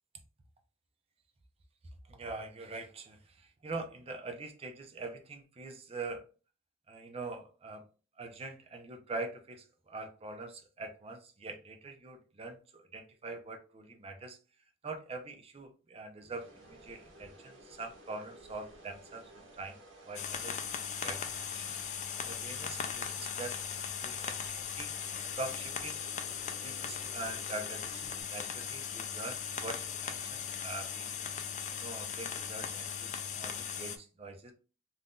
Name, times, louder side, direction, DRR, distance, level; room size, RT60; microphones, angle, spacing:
voice 1, 2.1-6.3 6.9-7.8 8.2-14.4 14.8-19.8 20.1-26.0 26.6-31.1 31.7-34.5, right 3 dB, 30° right, 5 dB, 0.5 m, -44 dB
sound 1, 16.2-28.2, right 1 dB, 85° right, 1.2 m, -55 dB
sound 2, 20.1-34.0, left 7 dB, 40° left, 0.3 m, -38 dB
3.5 x 2.6 x 2.3 m, 0.35 s
head